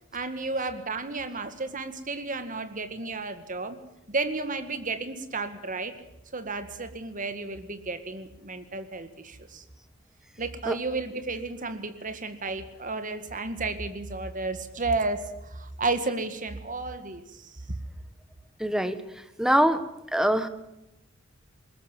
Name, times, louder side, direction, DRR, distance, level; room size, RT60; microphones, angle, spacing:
voice 1, 0.1-3.8 4.1-6.0 6.3-9.6 10.4-17.5, right 3 dB, 40° right, 10 dB, 1.9 m, -32 dB
voice 2, 18.6-19.0 19.4-19.8 20.1-20.5, equal, 5° right, 11 dB, 1.3 m, -23 dB
21.0 x 19.0 x 7.5 m, 0.90 s
head